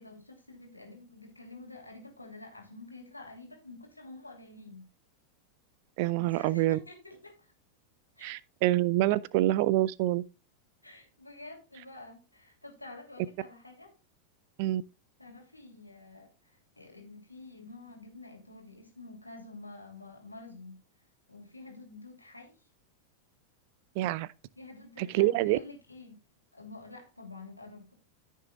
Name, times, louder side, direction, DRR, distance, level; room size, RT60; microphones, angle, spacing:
voice 1, 0.0-4.9 6.2-7.5 8.2-8.4 10.8-13.9 15.2-20.8 21.3-22.7 24.5-26.2 26.5-27.9, left 2 dB, 85° left, 2.8 m, -49 dB
voice 2, 6.0-6.8 8.2-10.2 14.6-14.8 24.0-24.3 25.0-25.6, right 16 dB, 45° right, 0.5 m, -26 dB
14.0 x 6.5 x 2.3 m
figure-of-eight pair, 90°, 0 cm